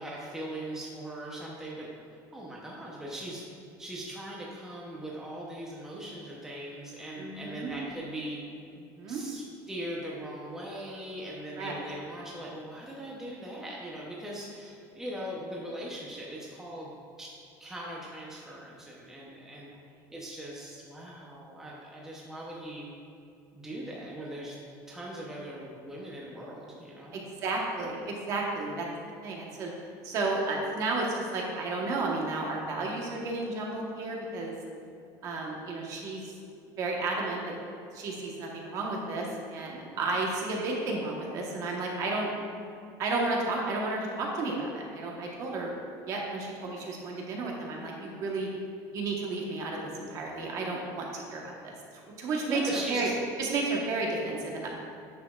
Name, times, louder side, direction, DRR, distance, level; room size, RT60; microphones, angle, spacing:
voice 1, 0.0-1.9 2.3-3.4 3.8-8.4 9.1-16.9 17.2-17.3 17.6-19.7 20.1-22.9 23.5-24.6 24.9-27.2 52.5-53.0, right 1 dB, 5° right, -4 dB, 0.7 m, -40 dB
voice 2, 7.2-7.7 8.8-9.2 11.6-11.7 27.1-28.9 29.2-29.7 30.0-34.5 35.2-36.3 36.8-37.5 37.9-42.3 43.0-45.7 46.0-48.5 48.9-52.6 52.9-53.1 53.4-54.7, right 3 dB, 40° right, -1 dB, 1.1 m, -32 dB
9.6 x 6.8 x 2.4 m, 2.5 s
cardioid pair, 170°, 8 cm